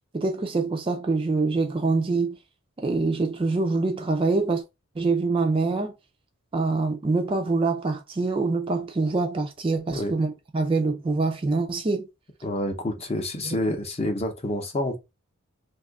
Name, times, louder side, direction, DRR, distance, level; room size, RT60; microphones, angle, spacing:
voice 1, 0.1-2.4 2.8-4.6 5.0-5.9 6.5-12.1 13.4-13.6, right 3 dB, 25° right, 0.3 m, -25 dB
voice 2, 12.4-15.0, left 1 dB, 30° left, 0.6 m, -28 dB
2.6 x 2.4 x 3.5 m
head